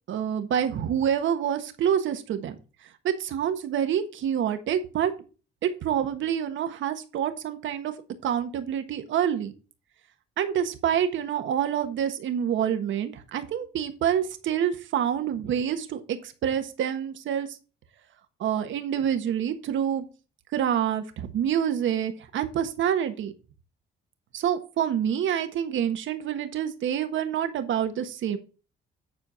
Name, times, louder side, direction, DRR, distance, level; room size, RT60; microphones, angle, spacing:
voice 1, 0.1-2.5 3.0-5.1 5.6-7.9 8.2-9.5 10.4-16.2 16.4-17.5 18.4-20.0 20.5-23.3 24.3-28.4, right 9 dB, 75° right, 8 dB, 1.4 m, -27 dB
9.7 x 4.6 x 5.7 m, 0.34 s
cardioid pair, 90°, 20 cm